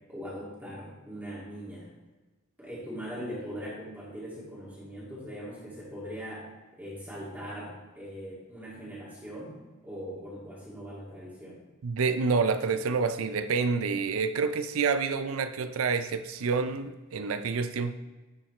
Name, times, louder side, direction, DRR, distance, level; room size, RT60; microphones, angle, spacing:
voice 1, 0.1-1.9 2.6-6.5 6.7-9.6 9.8-11.6, equal, 10° right, -7 dB, 2.2 m, -40 dB
voice 2, 11.8-17.9, right 5 dB, 75° right, 10 dB, 0.5 m, -28 dB
11.0 x 5.9 x 3.2 m, 1.2 s
head